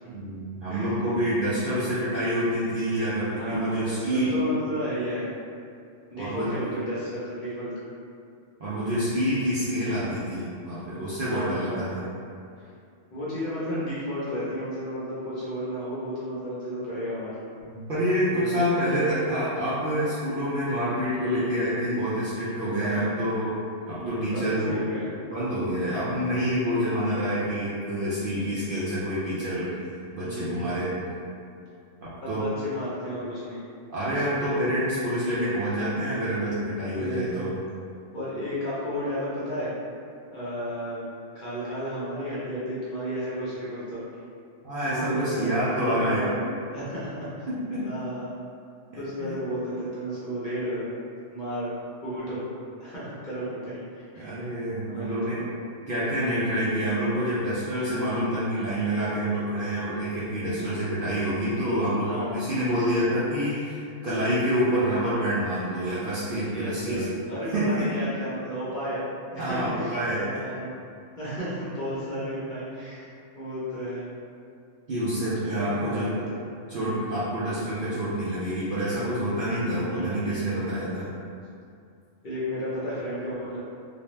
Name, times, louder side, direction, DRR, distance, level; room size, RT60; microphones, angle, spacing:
voice 1, 0.1-4.3 6.2-6.5 8.6-12.0 17.7-23.5 23.8-24.8 25.3-31.0 32.0-32.5 33.9-37.5 44.6-46.3 47.5-47.9 48.9-49.3 52.2-52.3 54.1-55.5 55.9-67.1 67.5-67.9 69.4-70.4 72.1-72.3 72.7-72.9 74.9-76.1 76.7-81.1, equal, 60° right, -10 dB, 0.6 m, -27 dB
voice 2, 3.4-5.3 6.1-7.7 11.3-11.8 13.1-17.4 18.3-18.8 21.2-21.6 22.7-23.1 24.0-25.1 30.2-30.7 32.2-33.6 34.1-34.2 35.7-35.8 36.9-37.5 38.1-39.7 40.3-41.0 41.3-44.0 44.8-46.4 46.7-47.5 47.8-48.3 49.0-50.9 51.3-51.7 52.0-52.4 52.8-54.6 54.9-55.4 62.0-62.4 63.5-63.6 64.5-64.8 66.5-70.8 71.2-74.1 75.4-76.4 76.7-77.1 79.9-80.5 82.2-83.6, equal, 45° left, -10 dB, 0.7 m, -33 dB
2.6 x 2.1 x 3.1 m, 2.4 s
omnidirectional pair, 1.3 m